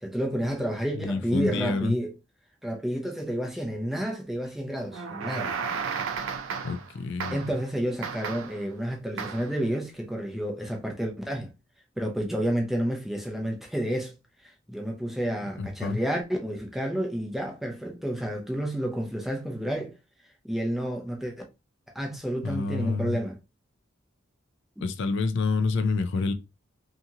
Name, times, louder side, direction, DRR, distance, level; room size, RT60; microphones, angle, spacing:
voice 1, 0.0-2.1 2.6-5.5 7.3-11.5 12.0-14.1 14.4-19.9 20.4-21.3 21.9-23.4 24.8-24.9, equal, ahead, 0.5 m, -30 dB
voice 2, 1.0-2.0 6.6-7.4 15.6-16.0 22.1-23.2 24.8-26.3, left 3 dB, 60° left, 0.4 m, -28 dB
sound 1, 4.9-6.9 7.2-7.6 8.0-8.6 9.2-9.6, right 6 dB, 65° right, 0.4 m, -33 dB
2.8 x 2.8 x 2.3 m
head